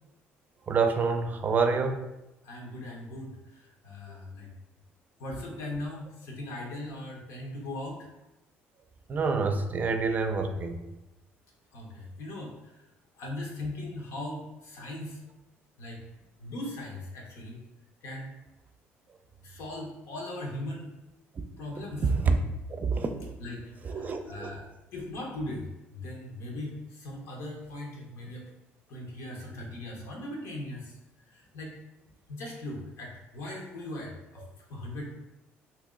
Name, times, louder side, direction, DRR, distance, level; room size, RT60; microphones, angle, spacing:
voice 1, 0.7-2.1 9.1-10.8 22.0-22.3 22.7-23.3 23.8-24.5, right 4 dB, 35° right, 6 dB, 0.5 m, -27 dB
voice 2, 2.4-4.5 5.2-8.1 11.7-12.5 13.2-15.2 15.8-16.0 16.4-17.6 18.0-18.3 19.4-20.9 21.6-22.0 23.4-24.6 24.9-28.5 28.9-30.9 31.3-31.7 32.3-34.4 34.7-35.1, left 1 dB, 75° left, 0 dB, 0.9 m, -39 dB
3.0 x 2.7 x 3.7 m, 0.94 s
cardioid pair, 95°, 5 cm